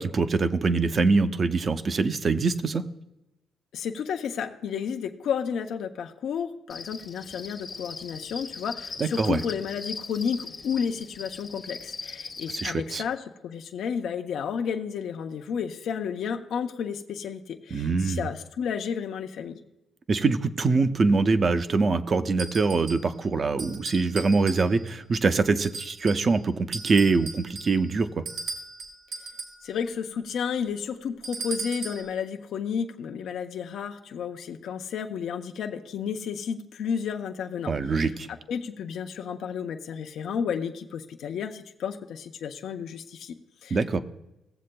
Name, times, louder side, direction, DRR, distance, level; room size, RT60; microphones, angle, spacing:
voice 1, 0.0-2.8 9.0-9.4 12.5-13.0 17.7-18.3 20.1-28.2 37.7-38.3 43.7-44.0, right 4 dB, 40° right, 10 dB, 0.6 m, -24 dB
voice 2, 3.7-19.6 29.6-38.1 38.5-44.0, left 7 dB, 70° left, 5 dB, 0.6 m, -32 dB
Cricket, 6.7-12.7, left 4 dB, 35° left, 0.9 m, -39 dB
sound 1, 22.4-23.1 23.6-25.0 25.6-26.3 26.7-29.7 31.2-32.1, right 4 dB, 80° right, 2.1 m, -38 dB
16.5 x 7.5 x 2.2 m, 0.91 s
cardioid pair, 90°, 0 cm